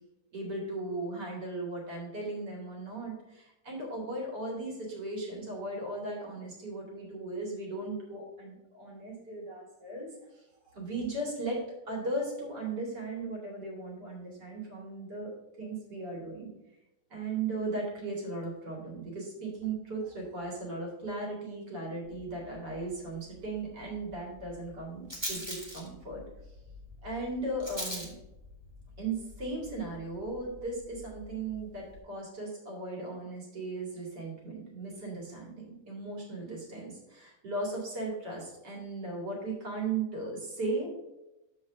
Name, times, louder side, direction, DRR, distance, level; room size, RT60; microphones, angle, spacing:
voice 1, 0.3-16.5 17.1-26.2 27.0-28.1 29.0-41.0, right 2 dB, 60° right, -2 dB, 2.8 m, -37 dB
Rattle, 22.1-32.0, equal, 15° right, 1.7 m, -45 dB
6.2 x 4.9 x 6.1 m, 0.93 s
omnidirectional pair, 2.1 m